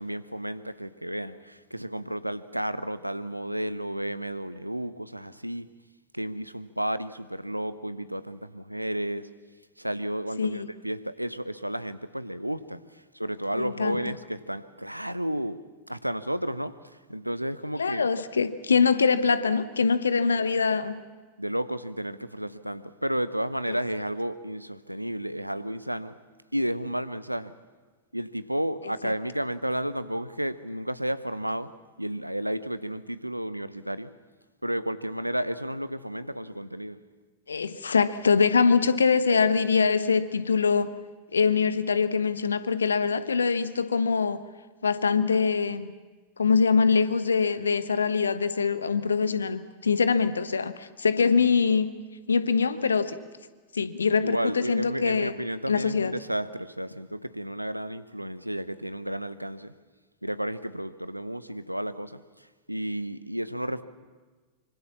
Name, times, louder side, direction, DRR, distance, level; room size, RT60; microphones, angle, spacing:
voice 1, 0.0-5.7 6.1-9.3 9.8-15.6 15.9-18.1 21.4-26.1 26.5-27.5 28.1-31.7 32.0-34.1 34.6-37.0 54.2-59.7 60.2-63.8, right 1 dB, 90° right, 15 dB, 0.9 m, -32 dB
voice 2, 13.5-14.0 17.8-21.0 23.7-23.8 29.0-29.1 37.5-40.9 41.3-44.4 44.8-45.9 46.4-52.0 52.3-53.2 53.7-55.3 55.7-56.1, left 5 dB, 75° left, 13 dB, 1.2 m, -23 dB
25.0 x 25.0 x 7.4 m, 1.4 s
figure-of-eight pair, 90°, 0 cm